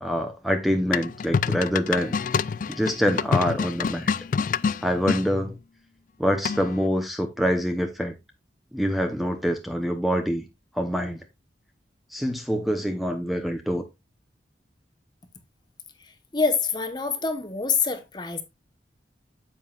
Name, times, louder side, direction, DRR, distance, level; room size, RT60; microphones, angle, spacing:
voice 1, 0.0-2.1 2.7-4.1 4.8-5.6 6.2-8.1 8.7-10.5 10.7-11.2 12.1-13.8, equal, ahead, 0.8 m, -25 dB
sound 1, 0.9-5.2 6.4-6.9, left 5 dB, 45° left, 0.3 m, -26 dB
voice 2, 16.3-18.4, left 5 dB, 25° left, 1.1 m, -25 dB
9.2 x 7.6 x 2.4 m
head